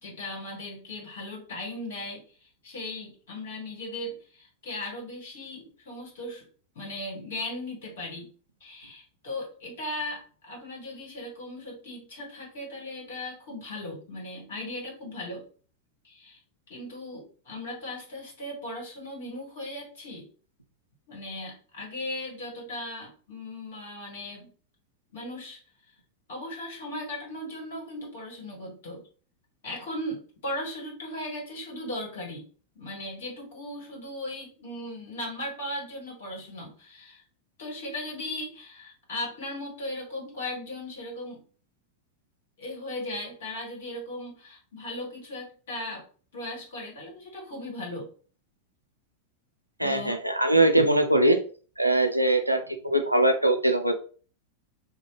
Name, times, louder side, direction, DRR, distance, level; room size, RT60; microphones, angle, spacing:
voice 1, 0.0-6.4 6.7-8.3 8.6-15.4 16.0-16.4 16.7-20.3 21.1-24.5 25.1-25.6 26.3-29.0 29.6-32.4 32.7-37.2 37.6-41.4 42.6-46.0 46.3-48.1 49.8-50.1, left 1 dB, 60° left, -1 dB, 1.4 m, -37 dB
voice 2, 49.8-51.4 51.8-53.9, right 1 dB, 90° right, 6 dB, 0.4 m, -22 dB
3.0 x 2.1 x 2.8 m, 0.40 s
figure-of-eight pair, 90°, 0 cm